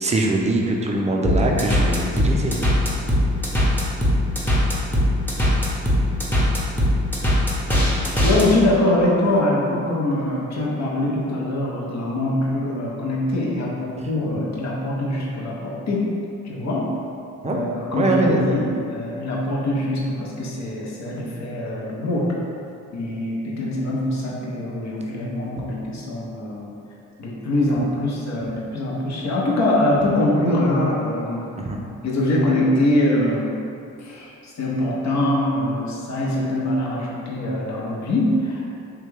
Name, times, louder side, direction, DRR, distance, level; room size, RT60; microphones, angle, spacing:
voice 1, 0.0-2.6 17.4-17.7 17.9-18.4 31.7-31.8, right 2 dB, 20° right, 0 dB, 0.4 m, -22 dB
sound 1, 1.2-8.5, equal, 5° left, 0.8 m, -19 dB
voice 2, 8.2-16.0 16.4-16.9 17.4-22.3 22.9-26.7 27.2-31.5 32.0-33.6 34.0-38.7, left 1 dB, 55° left, -4 dB, 0.8 m, -23 dB
3.1 x 2.3 x 3.2 m, 2.6 s
supercardioid pair, 55°, 34 cm